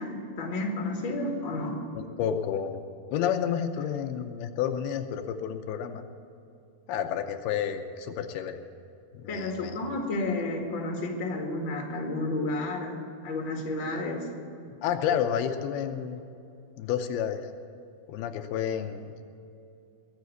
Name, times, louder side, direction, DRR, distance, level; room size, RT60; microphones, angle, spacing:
voice 1, 0.0-1.8 9.3-14.3, left 2 dB, 40° left, 2 dB, 2.1 m, -31 dB
voice 2, 2.0-2.8 3.1-6.0 6.9-8.6 9.1-9.8 14.8-16.2 16.8-17.5 18.1-19.2, left 8 dB, 85° left, 6 dB, 2.7 m, -30 dB
21.0 x 7.4 x 8.3 m, 2.6 s
omnidirectional pair, 4.4 m